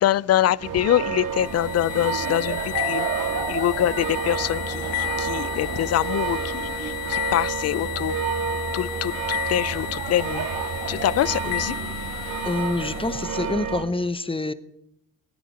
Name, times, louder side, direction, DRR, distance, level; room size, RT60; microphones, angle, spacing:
voice 1, 0.0-8.2 8.7-10.5 10.9-11.8, left 12 dB, 45° left, 0.5 m, -25 dB
sound 1, 0.6-13.9, right 6 dB, 65° right, 2.8 m, -29 dB
sound 2, 1.3-13.5, left 19 dB, 90° left, 1.0 m, -33 dB
voice 2, 12.4-14.5, left 2 dB, 15° left, 1.1 m, -26 dB
18.5 x 10.0 x 5.0 m
supercardioid pair, 60°, 35 cm